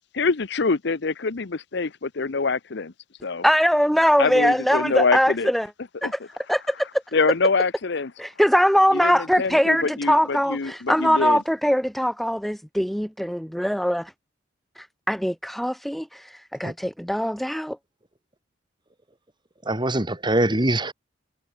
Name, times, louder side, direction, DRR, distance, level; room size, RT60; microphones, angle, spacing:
voice 1, 0.1-2.9 3.2-3.4 4.2-5.5 6.0-6.1 7.1-8.1 8.9-11.4, left 4 dB, 65° left, 0.8 m, -25 dB
voice 2, 3.4-5.7 6.0-6.2 6.5-7.0 8.2-14.1 14.8-17.8, equal, ahead, 0.8 m, -22 dB
voice 3, 19.6-20.9, right 1 dB, 25° right, 2.3 m, -23 dB
head